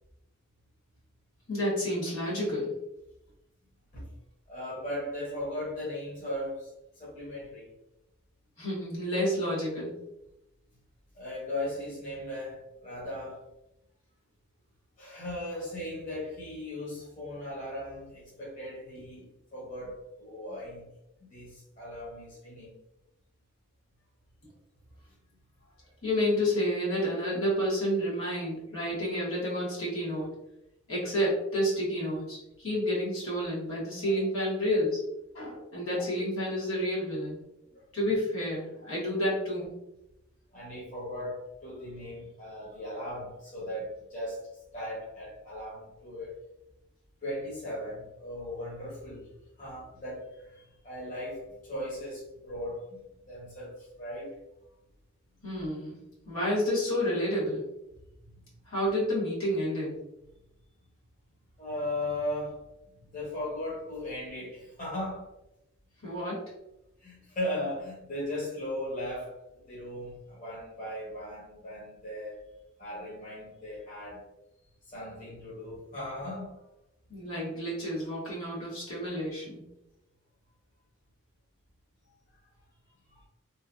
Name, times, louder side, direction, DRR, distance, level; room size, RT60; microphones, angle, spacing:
voice 1, 1.5-2.7 8.6-9.9 26.0-30.3 30.9-35.0 35.3-37.4 37.9-39.7 55.4-56.0 56.2-57.6 58.7-60.0 66.0-66.4 77.1-79.6, equal, 80° left, -7 dB, 1.4 m, -30 dB
voice 2, 4.5-6.7 6.9-7.7 11.1-13.4 15.0-20.8 21.3-22.7 34.0-34.2 35.9-36.1 37.7-37.8 40.5-44.5 44.7-46.4 47.2-49.3 49.6-53.0 53.3-54.3 58.2-58.3 61.6-62.6 63.1-65.3 67.0-72.4 72.8-74.2 74.8-76.6 83.1-83.3, left 1 dB, 40° left, -7 dB, 1.0 m, -37 dB
3.1 x 2.3 x 2.5 m, 0.91 s
head